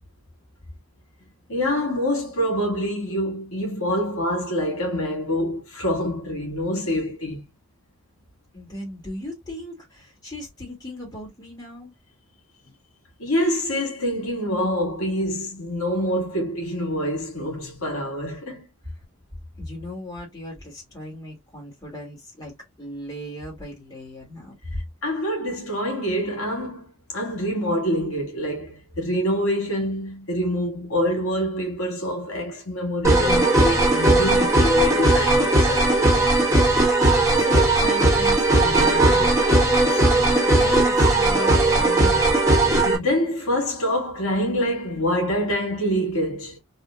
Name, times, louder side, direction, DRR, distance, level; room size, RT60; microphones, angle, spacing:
voice 1, 1.5-7.4 13.2-18.6 24.7-36.3 42.6-46.6, equal, 80° left, 1.9 m, -26 dB
voice 2, 8.5-11.9 19.6-24.5 37.3-42.2, left 1 dB, 15° left, 1.6 m, -37 dB
sound 1, 33.0-43.0, right 2 dB, 15° right, 1.2 m, -18 dB
3.5 x 2.5 x 2.4 m
head